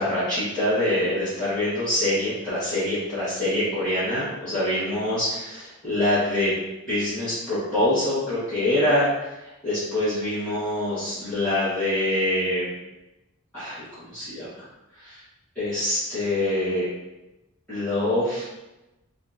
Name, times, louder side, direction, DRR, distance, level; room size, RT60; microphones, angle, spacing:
voice 1, 0.0-6.5 6.9-9.2 9.6-12.7 13.5-14.6 15.0-15.2 15.5-16.9 17.7-18.5, left 1 dB, 5° left, -17 dB, 1.5 m, -25 dB
4.0 x 2.5 x 2.7 m, 0.98 s
head